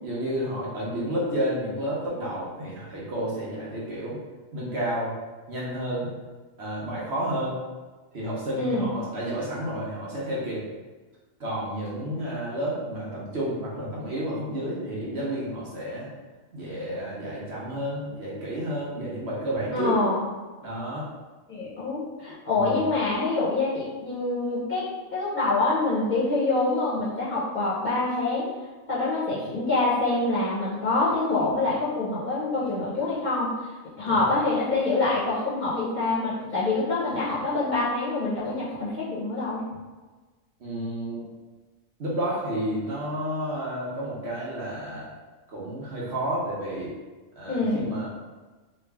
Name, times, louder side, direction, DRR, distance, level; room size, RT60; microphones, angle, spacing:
voice 1, 0.0-4.2 4.5-5.1 5.5-6.1 6.6-7.6 8.1-10.6 11.4-16.1 16.5-20.0 20.6-21.0 22.5-22.8 34.1-34.4 40.6-41.2 42.0-45.1 45.5-46.9 47.4-48.1, right 1 dB, 55° right, -6 dB, 1.1 m, -31 dB
voice 2, 8.6-9.0 19.7-20.2 21.5-28.5 28.9-33.5 34.0-39.6 47.5-48.0, left 2 dB, 40° left, -8 dB, 0.8 m, -26 dB
3.2 x 2.4 x 3.4 m, 1.3 s
omnidirectional pair, 1.4 m